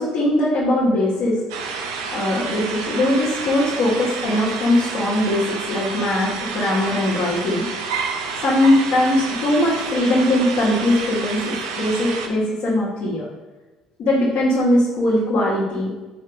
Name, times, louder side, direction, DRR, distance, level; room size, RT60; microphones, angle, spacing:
voice 1, 0.0-1.4 2.1-7.7 8.4-13.3 14.0-15.9, left 1 dB, 55° left, -8 dB, 2.2 m, -20 dB
sound 1, 1.5-12.3, right 5 dB, 70° right, 0.9 m, -29 dB
7.4 x 4.5 x 5.4 m, 1.2 s
figure-of-eight pair, 55°, 3 cm